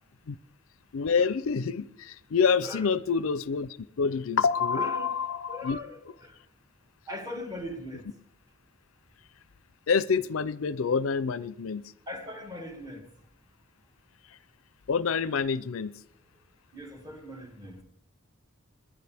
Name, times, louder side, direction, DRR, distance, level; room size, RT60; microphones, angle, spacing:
voice 1, 0.9-5.8 9.9-11.8 14.9-15.9, left 5 dB, 75° left, 17 dB, 0.5 m, -27 dB
voice 2, 4.7-5.1 5.5-6.4 7.1-8.0 12.1-13.1 16.7-17.8, left 1 dB, 20° right, 3 dB, 2.1 m, -40 dB
21.5 x 10.5 x 3.4 m, 0.76 s
head